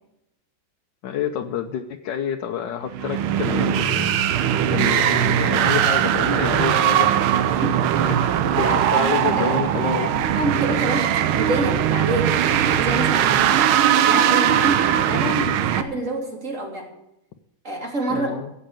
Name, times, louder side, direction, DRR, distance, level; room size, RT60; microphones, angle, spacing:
voice 1, 1.0-4.3 4.7-7.4 8.1-10.1 13.0-13.1 15.1-15.6 18.1-18.5, left 8 dB, 65° left, 3 dB, 1.4 m, -28 dB
sound 1, 2.9-15.8, right 10 dB, 85° right, 1.7 m, -20 dB
voice 2, 8.7-9.5 10.0-13.7 14.0-16.9 17.6-18.4, right 1 dB, 35° right, 0 dB, 3.4 m, -28 dB
15.5 x 7.9 x 8.9 m, 0.83 s
omnidirectional pair, 2.3 m